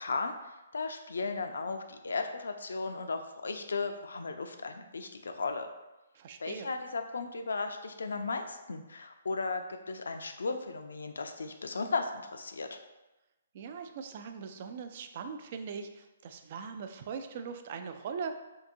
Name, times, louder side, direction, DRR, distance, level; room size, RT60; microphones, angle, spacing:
voice 1, 0.0-5.7 6.4-12.8, left 4 dB, 80° left, 7 dB, 0.4 m, -36 dB
voice 2, 6.1-6.7 13.5-18.3, right 6 dB, 45° right, 7 dB, 0.3 m, -40 dB
3.7 x 2.6 x 2.6 m, 1.0 s
hypercardioid pair, 145°, 0 cm